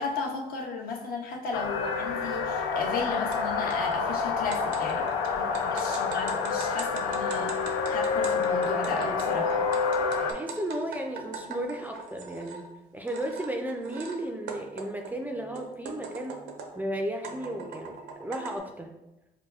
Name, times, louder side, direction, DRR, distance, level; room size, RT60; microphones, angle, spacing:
voice 1, 0.0-7.6 7.9-9.6, left 4 dB, 60° left, 1 dB, 0.7 m, -34 dB
sound 1, 1.5-10.3, left 5 dB, 90° left, 0.4 m, -28 dB
sound 2, 3.3-3.4 3.7-12.6 13.1-14.2 14.5-16.8 17.2-18.6, right 5 dB, 80° right, 0.6 m, -41 dB
voice 2, 10.3-12.6 12.9-16.4 16.7-18.9, right 1 dB, 10° right, 2 dB, 0.4 m, -34 dB
4.8 x 2.2 x 2.3 m, 0.95 s
cardioid pair, 85°, 17 cm